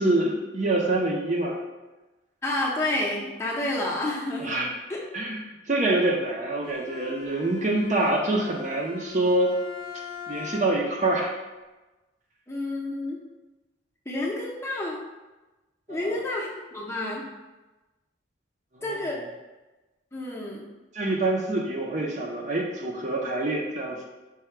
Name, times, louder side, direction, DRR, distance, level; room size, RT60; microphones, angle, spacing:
voice 1, 0.0-1.6 4.4-4.7 5.1-5.4 5.7-9.5 10.3-11.3 15.9-16.2 18.7-18.8 19.1-19.2 20.9-24.1, right 2 dB, 40° right, -1 dB, 0.6 m, -26 dB
voice 2, 2.4-4.6 12.5-13.2 14.1-15.0 15.9-17.2 18.8-19.2 20.1-20.6, left 1 dB, 15° left, -4 dB, 0.6 m, -29 dB
Bowed string instrument, 6.6-11.0, left 6 dB, 55° left, 0.6 m, -41 dB
4.7 x 2.2 x 4.4 m, 1.1 s
head